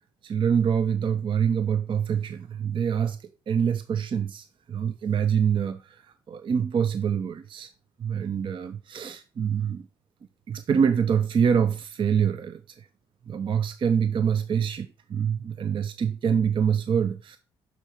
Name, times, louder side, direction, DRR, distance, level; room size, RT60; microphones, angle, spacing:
voice 1, 0.2-3.2 3.5-6.0 6.3-7.7 8.0-9.9 10.5-12.9 13.3-17.4, right 7 dB, 45° right, 0.5 m, -25 dB
6.8 x 3.4 x 4.4 m
hypercardioid pair, 50°, 12 cm